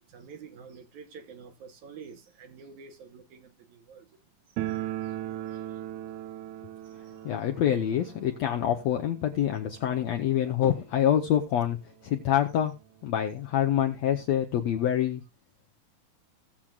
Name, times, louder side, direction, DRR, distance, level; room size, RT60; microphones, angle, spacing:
voice 1, 0.1-4.1 4.6-5.2 5.5-5.8 6.9-7.2, right 6 dB, 65° right, 2.2 m, -49 dB
sound 1, 4.6-11.3 11.5-11.6 11.9-12.0 12.7-12.8 13.1-14.3, right 13 dB, 85° right, 1.6 m, -39 dB
voice 2, 7.2-11.8 12.0-12.7 13.0-15.2, left 10 dB, 75° left, 1.6 m, -26 dB
18.5 x 7.4 x 2.4 m
omnidirectional pair, 4.1 m